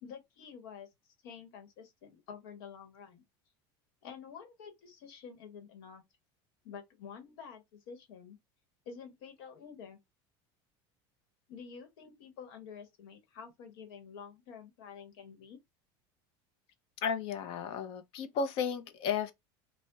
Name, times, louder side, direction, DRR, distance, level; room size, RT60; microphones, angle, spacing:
voice 1, 0.0-0.9 1.2-3.2 4.0-6.0 6.6-8.4 8.8-10.0 11.5-15.6, left 6 dB, 85° left, 1.0 m, -49 dB
voice 2, 17.0-19.3, left 6 dB, 50° left, 0.5 m, -33 dB
3.9 x 2.1 x 2.2 m
supercardioid pair, 145°, 12 cm